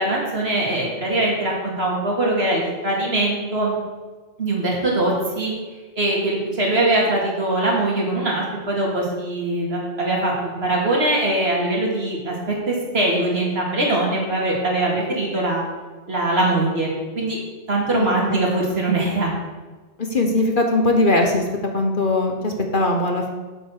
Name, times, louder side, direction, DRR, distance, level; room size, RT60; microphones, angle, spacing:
voice 1, 0.0-3.7 4.4-5.5 6.0-15.6 16.1-17.4 17.7-19.3, right 2 dB, 55° right, -3 dB, 2.9 m, -22 dB
voice 2, 17.9-18.5 20.1-21.4 21.7-23.3, left 2 dB, 45° left, 3 dB, 1.2 m, -20 dB
8.0 x 8.0 x 6.6 m, 1.3 s
omnidirectional pair, 1.3 m